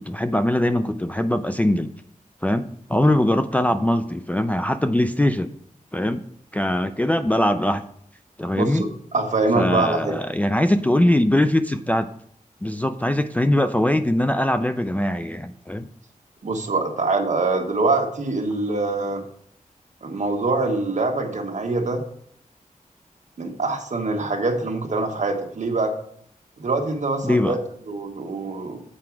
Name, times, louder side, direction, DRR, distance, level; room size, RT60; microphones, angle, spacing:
voice 1, 0.1-1.9 2.4-5.5 5.9-6.2 6.5-7.9 8.4-8.8 9.6-12.1 12.6-15.8 27.2-27.6, left 1 dB, 10° left, 7 dB, 0.3 m, -21 dB
voice 2, 8.5-10.1 16.4-19.2 20.0-22.0 23.4-25.9 26.6-27.6 27.9-28.8, right 3 dB, 55° right, 3 dB, 1.3 m, -24 dB
7.6 x 4.8 x 5.9 m, 0.65 s
wide cardioid pair, 130°, 14 cm